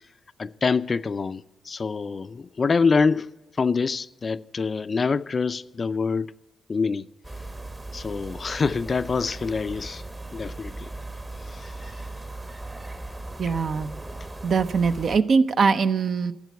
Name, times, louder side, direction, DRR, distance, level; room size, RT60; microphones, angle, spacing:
voice 1, 0.4-6.3 6.7-7.1 7.9-10.0 10.3-10.9 11.5-11.6, left 4 dB, 40° left, 0.4 m, -25 dB
sound 1, 7.2-15.2, right 2 dB, 20° right, 1.0 m, -38 dB
voice 2, 13.4-14.0 14.4-16.3, right 5 dB, 55° right, 0.7 m, -22 dB
12.5 x 7.2 x 9.4 m
cardioid pair, 85°, 0 cm